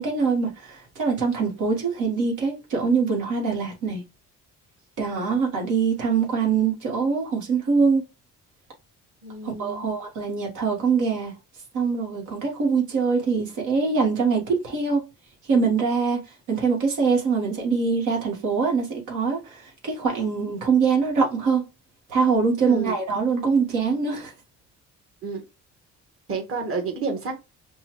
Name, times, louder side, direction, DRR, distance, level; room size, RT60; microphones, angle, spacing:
voice 1, 0.0-4.0 5.0-8.0 9.4-11.3 11.7-15.0 15.5-16.2 16.5-21.6 22.1-24.3, right 5 dB, 80° right, 1.6 m, -23 dB
voice 2, 9.2-9.8 22.7-23.0 25.2-25.4 26.3-27.3, right 4 dB, 45° right, 1.5 m, -30 dB
5.4 x 2.3 x 3.1 m
cardioid pair, 90°, 30 cm